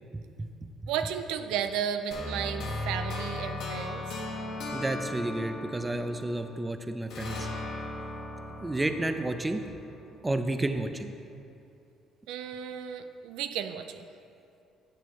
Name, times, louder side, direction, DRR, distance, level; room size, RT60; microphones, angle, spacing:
voice 1, 0.1-0.7 4.7-7.5 8.6-9.6 10.2-11.1, right 2 dB, 15° right, 8 dB, 0.5 m, -31 dB
voice 2, 0.9-4.0 12.3-14.0, right 8 dB, 85° right, 9 dB, 0.4 m, -33 dB
sound 1, 2.1-6.6 7.1-10.2, left 1 dB, 70° left, 1.4 m, -37 dB
11.0 x 7.5 x 3.1 m, 2.6 s
cardioid pair, 115°, 0 cm